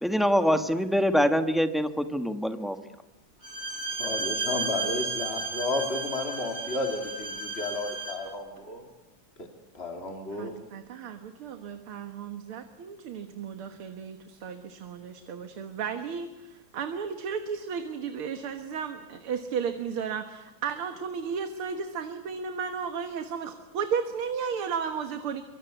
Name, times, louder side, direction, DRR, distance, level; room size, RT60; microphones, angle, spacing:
voice 1, 0.0-2.8, equal, ahead, 7 dB, 0.9 m, -24 dB
Bowed string instrument, 3.4-8.3, right 3 dB, 30° right, 5.6 m, -33 dB
voice 2, 3.9-8.8 9.4-9.5 9.7-10.6, left 2 dB, 30° left, 3 dB, 2.8 m, -32 dB
voice 3, 10.3-25.4, right 6 dB, 75° right, 7 dB, 2.3 m, -34 dB
25.0 x 24.5 x 8.2 m, 1.0 s
omnidirectional pair, 2.4 m